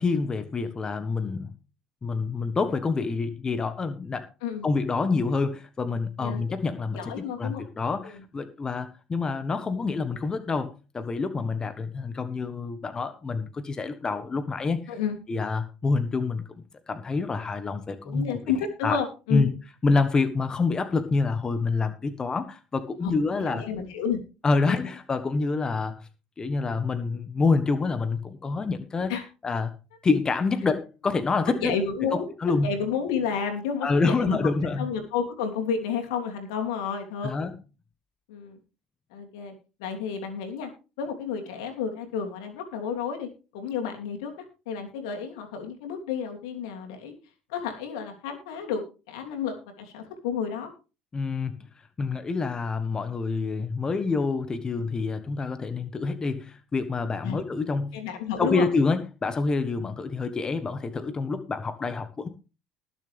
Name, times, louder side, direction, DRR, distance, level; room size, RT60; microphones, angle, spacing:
voice 1, 0.0-1.5 2.0-4.3 4.6-14.9 15.3-18.4 18.8-19.0 19.3-19.5 19.8-23.7 24.4-26.1 26.4-29.1 29.4-29.7 30.0-31.7 32.4-32.8 33.8-34.9 37.2-37.5 51.1-51.6 52.0-58.0 58.4-62.3, left 4 dB, 25° left, 10 dB, 1.4 m, -27 dB
voice 2, 6.9-7.6 8.0-8.1 14.9-15.2 18.0-19.5 23.0-24.2 24.7-24.8 29.1-29.2 31.6-32.3 32.6-34.4 34.8-37.3 38.3-38.6 39.1-39.5 39.8-40.7 41.0-47.1 47.5-48.8 49.1-50.7 57.2-57.4 57.9-58.6, left 6 dB, 80° left, 4 dB, 3.1 m, -31 dB
20.0 x 7.2 x 3.6 m, 0.32 s
supercardioid pair, 85°, 3 cm